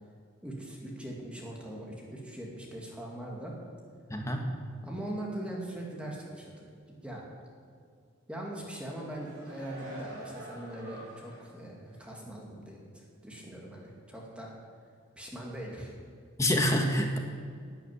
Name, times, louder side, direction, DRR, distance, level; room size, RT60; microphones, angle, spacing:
voice 1, 0.4-3.5 4.8-6.7 7.0-7.2 8.3-14.5 15.2-16.0, right 1 dB, 5° right, -2 dB, 2.3 m, -41 dB
voice 2, 4.1-4.5 16.4-17.2, left 1 dB, 15° left, 3 dB, 1.4 m, -27 dB
sound 1, 8.8-11.6 12.0-12.1, right 2 dB, 50° right, 4.8 m, -47 dB
12.0 x 9.2 x 9.6 m, 2.3 s
head